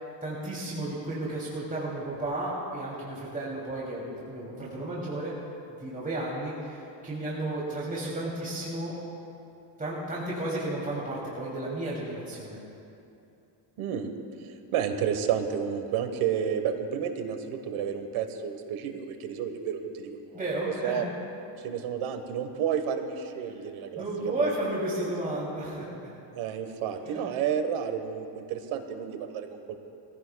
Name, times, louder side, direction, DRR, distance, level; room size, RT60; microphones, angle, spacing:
voice 1, 0.2-5.3 5.8-8.9 9.8-12.6 20.3-21.0 24.0-26.1 26.9-27.2, right 1 dB, 15° right, -6 dB, 2.8 m, -33 dB
voice 2, 13.8-14.1 14.4-20.4 20.8-21.1 21.6-24.5 25.0-25.1 26.3-29.8, right 8 dB, 85° right, 7 dB, 1.3 m, -31 dB
22.0 x 15.5 x 2.3 m, 2.7 s
cardioid pair, 115°, 48 cm